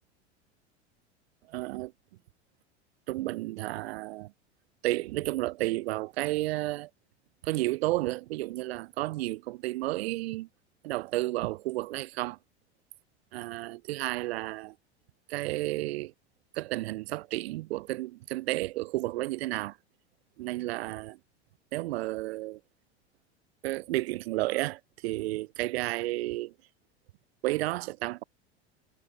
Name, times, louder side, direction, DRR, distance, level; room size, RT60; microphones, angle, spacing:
voice 1, 1.5-1.9 3.1-4.3 4.8-6.9 7.4-10.5 10.8-12.4 13.3-14.7 15.3-16.1 16.5-19.8 20.4-21.2 21.7-22.6 23.6-26.5 27.4-28.2, right 18 dB, 60° right, 0.8 m, -32 dB
figure-of-eight pair, 85°, 34 cm